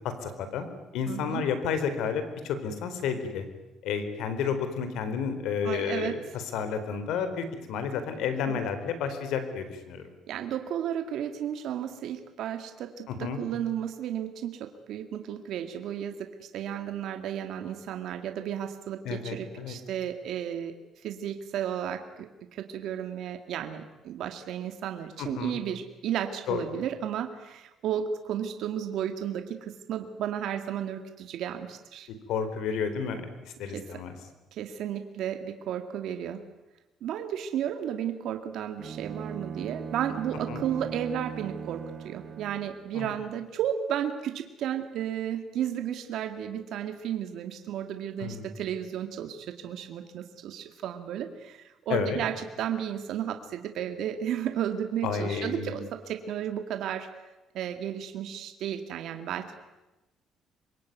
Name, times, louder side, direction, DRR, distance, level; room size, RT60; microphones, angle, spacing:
voice 1, 0.2-0.7 0.9-3.4 3.8-10.0 13.1-13.4 19.0-19.8 25.2-25.6 26.5-26.6 32.3-33.3 33.6-34.2 40.5-40.6 42.9-43.1 48.2-48.5 51.9-52.2 55.0-55.7, left 6 dB, 80° left, 10 dB, 4.3 m, -31 dB
voice 2, 1.1-1.4 5.6-6.2 8.5-8.6 10.3-20.7 21.0-32.1 33.7-34.0 34.5-36.4 37.0-57.1 57.5-59.5, right 9 dB, 70° right, 6 dB, 2.2 m, -33 dB
Bowed string instrument, 38.8-42.8, right 7 dB, 40° right, 2.1 m, -39 dB
26.0 x 23.0 x 9.5 m, 1.0 s
cardioid pair, 140°, 0 cm